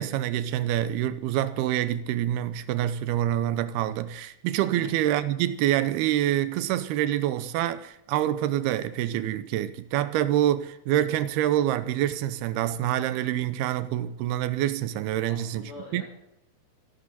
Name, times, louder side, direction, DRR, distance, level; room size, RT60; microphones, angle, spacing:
voice 1, 0.0-15.7 15.9-16.0, right 12 dB, 75° right, 2.6 m, -26 dB
voice 2, 15.3-16.0, left 2 dB, 40° left, 5.0 m, -44 dB
26.5 x 12.0 x 4.2 m
omnidirectional pair, 4.8 m